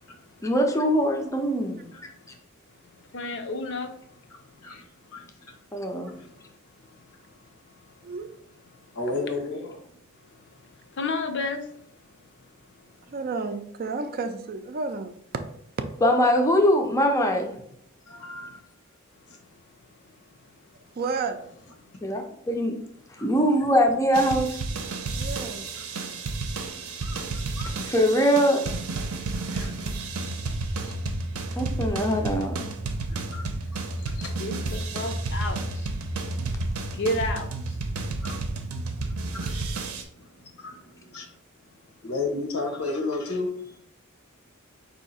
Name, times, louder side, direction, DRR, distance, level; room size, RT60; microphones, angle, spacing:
voice 1, 0.4-1.9 5.7-6.1 16.0-17.5 22.0-22.7 23.2-24.6 27.9-28.7 31.6-32.6, equal, 15° left, 0.5 m, -22 dB
voice 2, 3.1-3.9 6.3-6.5 6.8-6.9 7.9-8.0 10.7-11.7 34.0-34.1 34.4-35.9 36.8-37.8, left 2 dB, 55° left, 0.6 m, -31 dB
voice 3, 4.3-5.3 6.0-6.3 8.9-10.0 13.0-13.1 18.1-18.6 19.3-19.4 23.2-23.3 25.4-26.1 26.6-27.9 29.5-29.9 30.8-30.9 33.1-34.3 38.1-41.3 42.0-43.8, left 3 dB, 85° left, 1.1 m, -35 dB
voice 4, 13.1-15.4 20.9-21.4 25.1-25.7 35.0-35.2, right 4 dB, 45° right, 0.4 m, -32 dB
sound 1, 24.1-40.0, right 2 dB, 85° right, 0.6 m, -31 dB
4.5 x 2.8 x 4.1 m
head